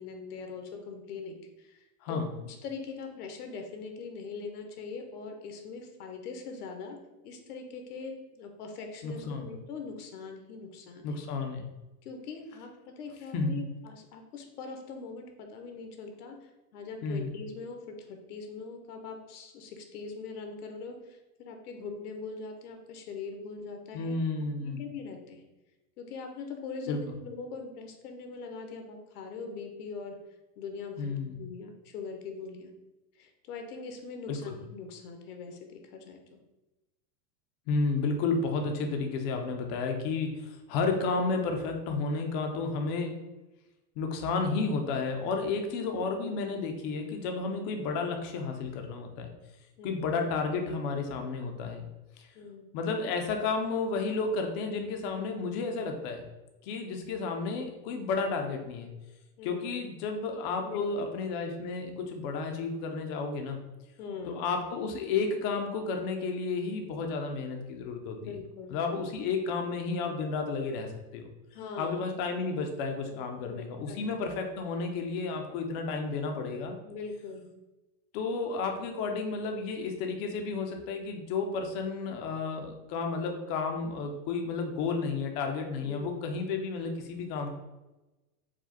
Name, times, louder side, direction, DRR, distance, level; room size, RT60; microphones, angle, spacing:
voice 1, 0.0-1.8 2.1-7.0 7.2-11.2 12.0-25.4 26.0-30.2 30.6-32.7 33.2-36.4 49.8-50.1 52.3-52.7 56.8-57.1 59.4-59.7 60.6-61.1 64.0-64.4 68.2-68.8 71.5-72.0 73.1-74.1 76.8-77.5 85.8-86.2, left 4 dB, 90° left, 5 dB, 0.9 m, -42 dB
voice 2, 9.0-9.5 11.0-11.7 13.3-13.6 17.0-17.3 23.9-24.8 26.9-27.0 31.0-31.4 34.3-34.5 37.7-43.1 44.0-49.3 49.8-51.8 52.2-52.3 52.7-56.2 56.6-58.9 59.4-63.6 64.3-68.2 68.7-71.3 71.8-76.8 78.1-87.5, left 4 dB, 30° left, 4 dB, 0.4 m, -32 dB
4.8 x 2.1 x 4.0 m, 1.0 s
supercardioid pair, 150°, 45 cm